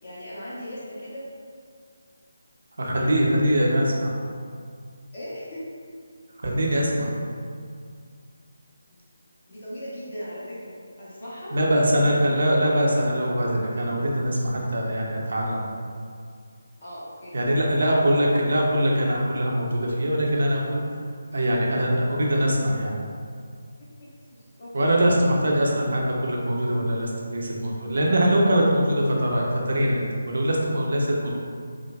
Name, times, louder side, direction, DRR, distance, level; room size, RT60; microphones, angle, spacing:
voice 1, 0.0-1.3 2.9-3.5 5.1-5.7 9.5-11.5 16.8-17.6 23.8-24.9, equal, 45° left, -9 dB, 1.2 m, -39 dB
voice 2, 2.8-4.1 6.4-7.1 11.5-15.6 17.3-20.8 21.3-23.0 24.7-31.4, equal, 60° right, -2 dB, 0.6 m, -22 dB
4.6 x 2.2 x 2.3 m, 2.2 s
figure-of-eight pair, 155°, 0 cm